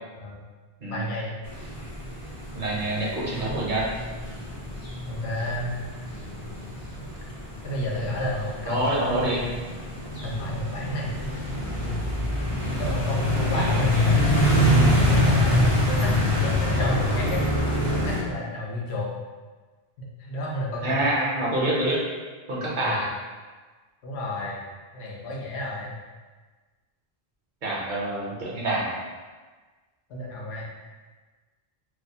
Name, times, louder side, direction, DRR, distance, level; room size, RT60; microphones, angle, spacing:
voice 1, 0.9-1.4 2.7-3.1 5.1-5.7 7.6-9.3 10.2-11.3 11.8-12.0 12.8-14.2 15.0-17.4 17.9-19.1 20.0-21.0 22.8-23.0 24.0-24.6 24.9-26.0 30.1-30.7, left 1 dB, 90° left, -3 dB, 0.8 m, -32 dB
sound 1, 1.5-18.2, left 1 dB, 40° left, 0.6 m, -25 dB
voice 2, 2.5-3.8 8.7-9.5 13.5-13.8 20.8-22.0 22.5-23.1 27.6-29.0, right 1 dB, 60° right, -5 dB, 0.6 m, -26 dB
2.3 x 2.1 x 2.6 m, 1.3 s
omnidirectional pair, 1.1 m